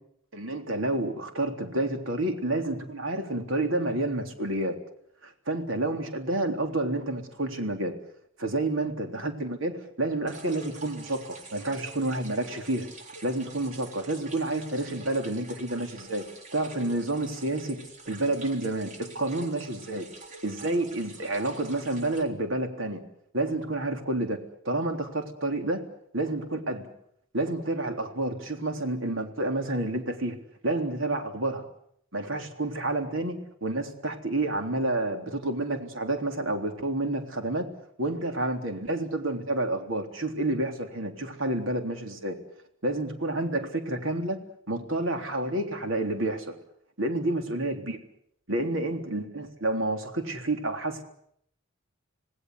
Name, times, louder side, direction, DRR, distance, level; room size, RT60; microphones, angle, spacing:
voice 1, 0.3-4.8 5.2-7.9 8.4-12.9 13.2-16.2 16.5-17.8 18.1-20.1 20.4-23.0 23.3-24.4 24.7-25.8 26.1-26.9 27.3-30.4 30.6-31.6 32.1-37.7 38.0-42.4 42.8-44.4 44.7-46.5 47.0-48.0 48.5-51.0, right 2 dB, 75° right, 5 dB, 3.7 m, -29 dB
sound 1, 10.3-22.2, right 2 dB, 35° right, 3.6 m, -46 dB
27.5 x 19.0 x 8.2 m, 0.71 s
head